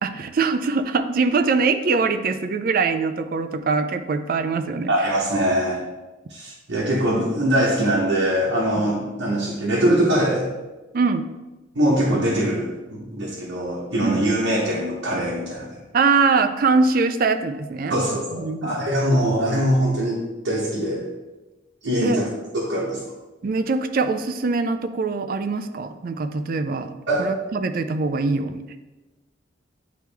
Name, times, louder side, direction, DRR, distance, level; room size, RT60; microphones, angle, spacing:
voice 1, 0.0-5.1 10.9-11.2 14.0-14.2 15.9-18.0 18.3-18.8 22.0-22.2 23.4-26.9 27.2-28.6, right 4 dB, 50° right, 9 dB, 0.4 m, -22 dB
voice 2, 4.9-5.8 6.3-10.5 11.7-15.7 17.9-21.1 21.8-22.3 22.5-23.0 27.1-27.3, right 1 dB, 85° right, -5 dB, 1.1 m, -22 dB
9.1 x 3.1 x 3.4 m, 1.1 s
head